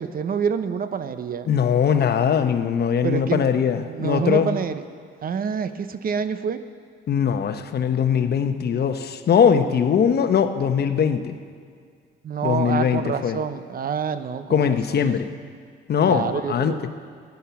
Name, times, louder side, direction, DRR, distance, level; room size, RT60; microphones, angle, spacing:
voice 1, 0.0-1.5 3.0-3.5 3.9-4.8 5.2-6.6 12.2-15.1 16.1-16.8, right 6 dB, 45° right, 11 dB, 0.8 m, -27 dB
voice 2, 1.5-4.5 7.1-11.3 12.4-13.4 14.5-15.3 15.9-16.7, left 7 dB, 55° left, 8 dB, 1.0 m, -21 dB
14.5 x 11.0 x 7.0 m, 2.1 s
cardioid pair, 90°, 20 cm